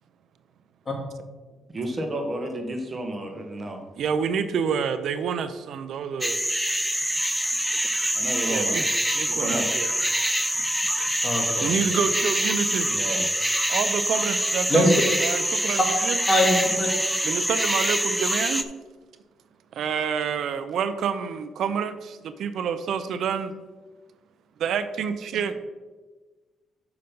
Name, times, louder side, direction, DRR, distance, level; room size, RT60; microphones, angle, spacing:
voice 1, 1.7-3.8 8.1-8.8 9.4-9.7 12.9-13.3 15.7-15.8, right 1 dB, 30° right, 1.4 m, -31 dB
voice 2, 4.0-6.4 8.5-8.8 9.1-9.9 11.6-12.9 13.7-16.2 17.2-18.7 19.7-23.5 24.6-25.5, right 7 dB, 70° right, 0.5 m, -28 dB
sound 1, 6.2-18.6, equal, ahead, 0.5 m, -25 dB
voice 3, 11.2-11.7 14.7-14.9 16.3-16.9, left 1 dB, 30° left, 2.3 m, -22 dB
6.5 x 5.8 x 5.3 m
cardioid pair, 90°, 0 cm